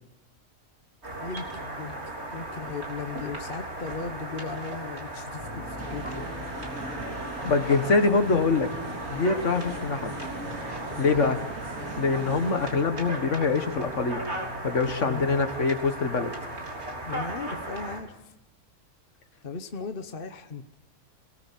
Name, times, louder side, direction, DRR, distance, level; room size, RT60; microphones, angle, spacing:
sound 1, 1.0-18.0, right 1 dB, 50° right, 4.0 m, -37 dB
voice 1, 1.1-1.5 1.8-2.0 2.3-6.2 11.1-11.4 15.1-15.4 17.0-18.3 19.4-20.7, left 5 dB, 40° left, 8 dB, 1.2 m, -37 dB
sound 2, 5.4-12.0, left 1 dB, 25° right, 4.7 m, -42 dB
sound 3, 5.8-12.7, right 2 dB, 65° right, 2.9 m, -40 dB
voice 2, 7.4-8.7 9.1-10.1 11.0-11.4 12.0-14.2 14.6-16.3, left 4 dB, 55° left, 9 dB, 1.9 m, -24 dB
26.5 x 19.0 x 8.4 m, 0.91 s
omnidirectional pair, 1.5 m